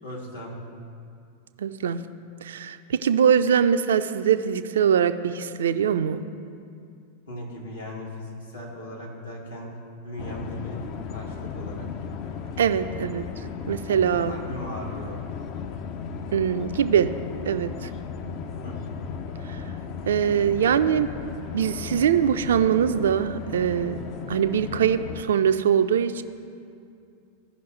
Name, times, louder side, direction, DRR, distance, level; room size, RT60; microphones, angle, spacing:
voice 1, 0.0-0.6 7.3-9.7 10.0-10.8 11.0-12.1 14.2-15.2 18.6-19.0, equal, 75° left, -4 dB, 2.2 m, -38 dB
voice 2, 1.6-2.0 2.4-6.2 12.6-13.2 13.7-14.3 16.3-17.1 17.5-17.9 20.1-21.1 21.5-24.0 24.3-26.2, right 8 dB, 65° right, 11 dB, 0.4 m, -22 dB
sound 1, 10.2-25.2, left 6 dB, 40° left, 0.5 m, -36 dB
15.5 x 5.6 x 3.2 m, 2.4 s
figure-of-eight pair, 90°, 0 cm